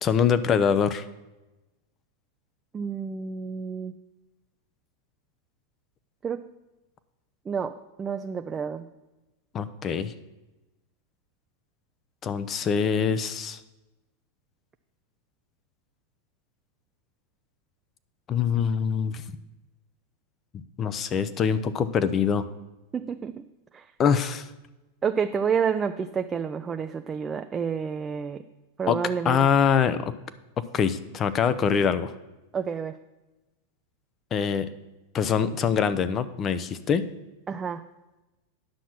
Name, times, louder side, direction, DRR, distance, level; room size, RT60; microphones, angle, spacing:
voice 1, 0.0-1.0 9.5-10.1 12.2-13.6 18.3-19.2 20.8-22.5 24.0-24.5 28.9-29.0 29.3-30.1 30.6-32.1 34.3-34.7 35.1-37.0, left 7 dB, 30° left, 13 dB, 0.7 m, -24 dB
voice 2, 2.7-3.9 6.2-6.4 7.5-8.9 22.9-23.5 23.7-23.9 25.0-28.4 28.8-29.5 32.5-33.0 37.5-37.8, right 6 dB, 20° right, 7 dB, 0.5 m, -29 dB
10.0 x 6.1 x 5.9 m, 1.0 s
hypercardioid pair, 110°, 0 cm